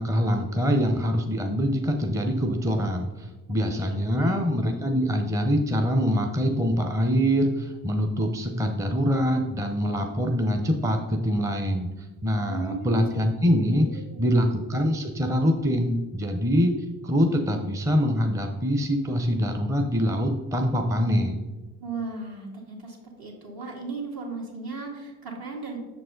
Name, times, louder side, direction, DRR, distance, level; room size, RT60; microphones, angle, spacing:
voice 1, 0.0-16.7 17.0-21.4, equal, 5° right, 4 dB, 0.6 m, -24 dB
voice 2, 3.7-4.4 12.5-13.0 13.9-14.4 21.8-25.8, right 4 dB, 55° right, 0 dB, 1.8 m, -36 dB
6.0 x 4.7 x 3.8 m, 1.1 s
supercardioid pair, 60°, 43 cm